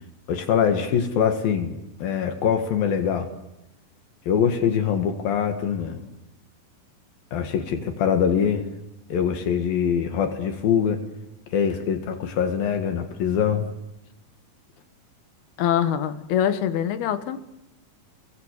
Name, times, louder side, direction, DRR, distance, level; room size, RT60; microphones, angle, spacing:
voice 1, 0.3-3.3 4.3-6.0 7.3-8.6 9.1-11.0 11.5-13.7, left 7 dB, 70° left, 6 dB, 3.6 m, -23 dB
voice 2, 15.6-17.4, left 10 dB, 90° left, 11 dB, 3.4 m, -24 dB
30.0 x 23.5 x 8.2 m, 0.85 s
omnidirectional pair, 4.3 m